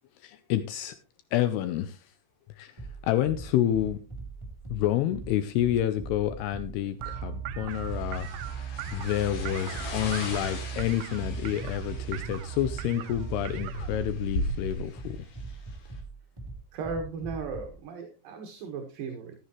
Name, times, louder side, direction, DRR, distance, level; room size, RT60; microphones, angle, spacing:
voice 1, 0.2-1.0 1.3-2.0 2.6-2.7 3.0-4.0 4.7-15.2, left 12 dB, 90° left, 12 dB, 2.3 m, -29 dB
sound 1, 2.8-17.8, right 2 dB, 10° right, 1.8 m, -42 dB
sound 2, 7.0-14.1, right 10 dB, 85° right, 3.1 m, -37 dB
sound 3, 7.7-16.0, left 1 dB, 55° left, 4.1 m, -38 dB
voice 2, 16.7-19.3, right 4 dB, 60° right, 4 dB, 2.7 m, -36 dB
13.5 x 12.5 x 3.0 m, 0.32 s
omnidirectional pair, 5.4 m